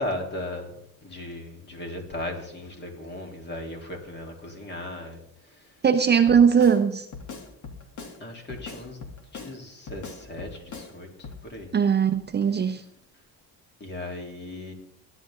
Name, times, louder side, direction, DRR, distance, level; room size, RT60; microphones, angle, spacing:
voice 1, 0.0-5.9 8.2-11.7 13.8-14.7, left 1 dB, 30° left, 2 dB, 3.5 m, -37 dB
voice 2, 5.8-7.1 11.7-12.8, right 7 dB, 30° right, 7 dB, 0.9 m, -20 dB
Drum kit, 6.3-6.8 7.1-8.2 8.5-9.5 9.9-10.9 11.2-11.4, left 5 dB, 55° left, 2.8 m, -40 dB
19.5 x 11.0 x 3.8 m, 0.71 s
cardioid pair, 130°, 36 cm